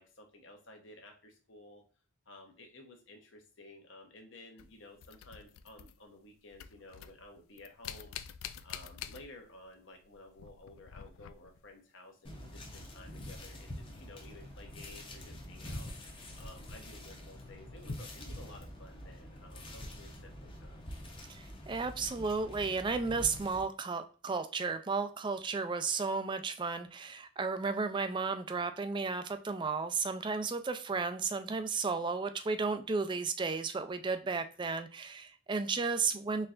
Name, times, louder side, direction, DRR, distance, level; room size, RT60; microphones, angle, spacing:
voice 1, 0.0-1.8 2.3-15.9 16.4-20.9, left 2 dB, 60° left, 3 dB, 1.0 m, -54 dB
sound 1, 4.6-6.3 6.5-9.7 10.0-11.7 13.6-13.7 14.6-14.7, left 9 dB, 85° left, 0.3 m, -48 dB
sound 2, 12.2-23.6, left 1 dB, 25° left, 0.7 m, -46 dB
voice 2, 21.3-36.5, right 4 dB, 25° right, 9 dB, 0.3 m, -33 dB
4.2 x 3.2 x 2.4 m, 0.38 s
head